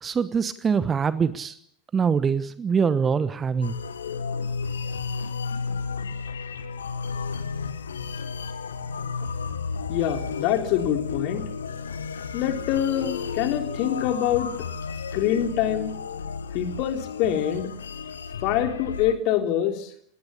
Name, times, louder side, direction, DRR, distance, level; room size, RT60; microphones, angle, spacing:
voice 1, 0.0-1.6 1.9-3.8, right 6 dB, 20° right, 15 dB, 1.1 m, -24 dB
sound 1, 3.6-19.1, left 5 dB, 70° left, 1.7 m, -32 dB
voice 2, 9.9-11.4 12.3-14.5 15.1-15.9 16.5-17.7 18.4-19.9, left 10 dB, 40° left, 5 dB, 3.5 m, -25 dB
20.5 x 19.0 x 8.5 m, 0.67 s
figure-of-eight pair, 90°, 0 cm